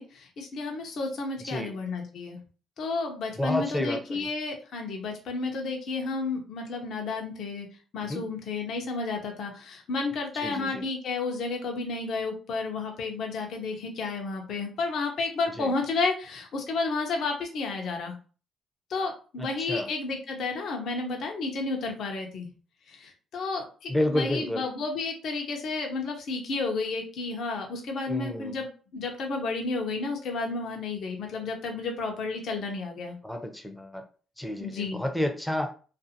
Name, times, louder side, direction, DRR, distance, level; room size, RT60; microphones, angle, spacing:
voice 1, 0.0-2.4 2.8-7.7 7.9-18.1 18.9-22.5 22.9-28.7 28.9-33.1 34.6-35.0, left 3 dB, 70° left, 2 dB, 0.6 m, -31 dB
voice 2, 1.4-1.8 3.4-4.3 8.1-8.2 10.3-10.8 15.6-15.7 19.4-19.9 23.9-24.7 28.1-28.6 33.2-34.0 34.4-35.7, left 1 dB, ahead, 5 dB, 0.5 m, -30 dB
2.5 x 2.4 x 2.7 m, 0.37 s
cardioid pair, 90°, 0 cm